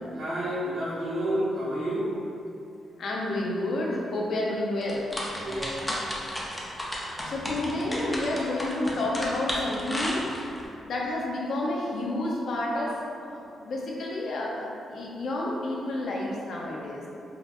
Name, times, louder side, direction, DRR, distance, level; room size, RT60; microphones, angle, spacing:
voice 1, 0.1-2.2 5.4-5.6, right 1 dB, 80° right, -12 dB, 1.3 m, -29 dB
voice 2, 3.0-5.1 7.2-10.3 10.8-13.0 13.3-14.6 14.9-17.0, left 1 dB, 65° left, -3 dB, 0.6 m, -30 dB
sound 1, 4.8-10.6, equal, 10° left, 0.6 m, -33 dB
4.2 x 2.3 x 2.4 m, 2.7 s
cardioid pair, 105°, 0 cm